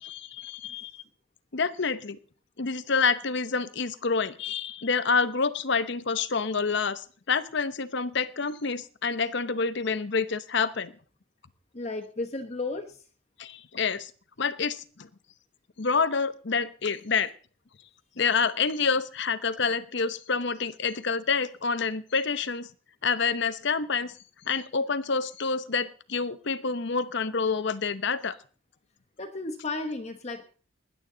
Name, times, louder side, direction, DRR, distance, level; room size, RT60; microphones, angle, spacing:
voice 1, 0.0-1.0 1.5-2.2 2.6-10.9 13.4-14.1 14.4-15.1 15.8-17.3 18.2-22.7 23.0-24.1 24.5-28.4, left 5 dB, 60° left, 14 dB, 0.8 m, -28 dB
voice 2, 11.7-13.1 29.2-30.4, left 3 dB, 35° left, 4 dB, 1.0 m, -34 dB
20.0 x 10.5 x 3.9 m, 0.41 s
head